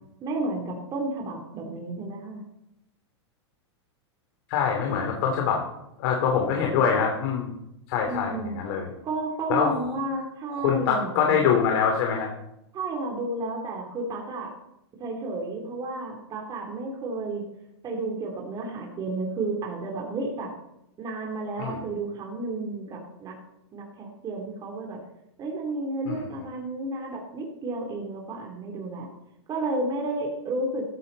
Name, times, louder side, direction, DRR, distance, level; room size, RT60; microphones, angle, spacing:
voice 1, 0.2-2.4 8.1-8.6 9.0-11.5 12.7-14.5 15.0-17.4 17.8-20.5 21.0-23.3 23.7-25.0 25.4-29.1 29.5-30.8, right 2 dB, 25° right, 0 dB, 3.2 m, -32 dB
voice 2, 4.5-5.6 6.0-7.5 7.9-8.9 9.5-9.8 10.6-12.3 21.6-21.8 26.0-26.2, left 7 dB, 55° left, 2 dB, 3.0 m, -24 dB
14.5 x 13.5 x 4.1 m, 0.86 s
hypercardioid pair, 125°, 15 cm